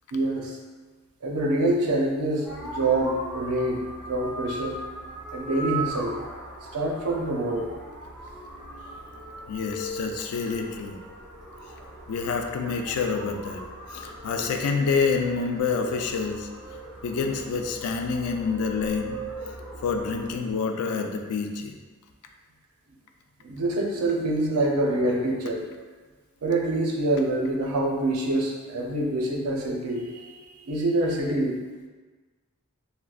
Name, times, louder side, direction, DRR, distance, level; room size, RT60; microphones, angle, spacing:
voice 1, 0.1-0.6 1.2-4.8 5.3-6.1 6.7-7.7 23.4-25.6 26.4-30.3 30.7-31.6, right 1 dB, 90° right, -1 dB, 0.6 m, -26 dB
sound 1, 2.5-20.4, right 1 dB, 5° right, 0.5 m, -39 dB
voice 2, 8.5-9.0 9.5-11.0 12.1-13.6 13.9-16.5 17.0-19.2 19.8-21.8, left 5 dB, 80° left, 4 dB, 0.3 m, -27 dB
3.6 x 2.2 x 2.4 m, 1.3 s
head